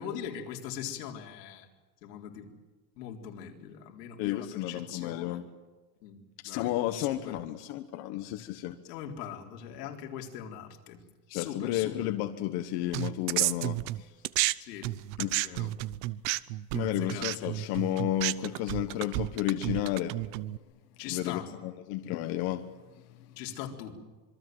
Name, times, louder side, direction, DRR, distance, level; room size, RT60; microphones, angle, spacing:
voice 1, 0.0-1.7 2.0-2.5 3.0-5.4 6.0-6.2 6.4-6.7 7.0-7.4 8.9-11.0 11.3-12.1 14.6-14.9 15.4-15.7 16.7-17.5 21.0-21.5 23.4-24.0, left 9 dB, 90° left, 4.0 m, -41 dB
voice 2, 4.2-5.4 6.4-8.8 11.3-14.1 15.2-15.4 16.7-20.2 21.1-22.6, left 13 dB, 50° left, 1.4 m, -32 dB
sound 1, 12.9-14.5 14.8-20.6, right 18 dB, 60° right, 0.9 m, -31 dB
26.5 x 22.5 x 7.9 m
cardioid pair, 160°, 47 cm